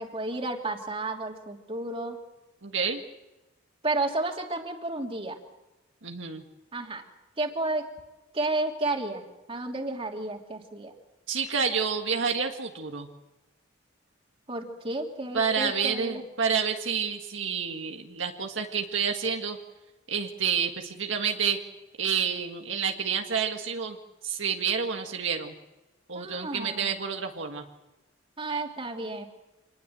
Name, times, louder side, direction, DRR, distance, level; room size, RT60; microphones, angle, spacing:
voice 1, 0.0-2.2 3.8-5.4 6.7-7.0 7.4-7.9 8.3-9.2 9.5-10.9 14.5-16.2 26.1-27.0 28.4-29.3, right 2 dB, 30° right, 2 dB, 3.0 m, -32 dB
voice 2, 2.6-3.0 6.0-6.4 11.3-13.1 15.3-19.6 20.1-21.6 22.0-24.0 24.2-25.5 26.1-27.6, right 6 dB, 70° right, 3 dB, 1.9 m, -29 dB
26.5 x 20.5 x 7.7 m, 1.0 s
head